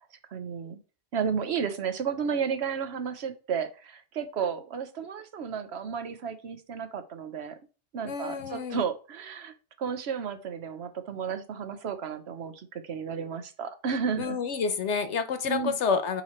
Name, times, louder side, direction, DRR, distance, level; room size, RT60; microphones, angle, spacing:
voice 1, 0.3-0.8 1.1-7.6 7.9-14.4 15.5-15.8, right 6 dB, 70° right, 9 dB, 1.0 m, -33 dB
voice 2, 8.0-8.8 14.2-16.2, left 5 dB, 80° left, 9 dB, 1.2 m, -29 dB
9.0 x 3.1 x 4.3 m, 0.35 s
omnidirectional pair, 1.2 m